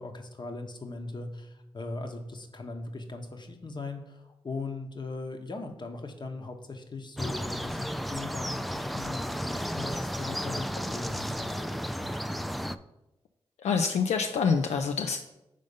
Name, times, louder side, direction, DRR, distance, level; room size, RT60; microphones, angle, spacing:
voice 1, 0.0-12.3, left 3 dB, 40° left, 4 dB, 1.0 m, -39 dB
sound 1, 7.2-12.8, equal, ahead, 0.3 m, -33 dB
voice 2, 13.6-15.2, left 5 dB, 80° left, 5 dB, 0.4 m, -26 dB
5.3 x 3.8 x 5.3 m, 0.91 s
cardioid pair, 45°, 11 cm